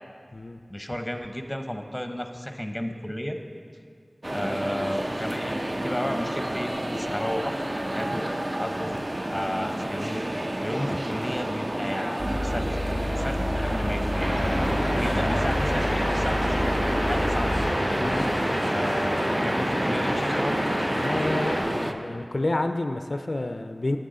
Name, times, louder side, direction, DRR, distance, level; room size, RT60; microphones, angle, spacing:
voice 1, 0.7-3.4 4.3-8.3 8.6-10.2 10.6-12.7 13.2-14.4 15.0-17.6 18.6-20.6, equal, 15° left, 6 dB, 0.7 m, -33 dB
sound 1, 4.2-21.9, right 1 dB, 40° right, 0.5 m, -30 dB
sound 2, 12.2-17.7, left 1 dB, 55° right, 2.0 m, -30 dB
sound 3, 14.1-21.6, equal, 85° right, 2.7 m, -27 dB
voice 2, 14.5-15.2 18.0-18.4 20.8-24.0, left 2 dB, 65° left, 7 dB, 0.3 m, -30 dB
9.3 x 9.2 x 3.8 m, 2.2 s
wide cardioid pair, 40°, 0 cm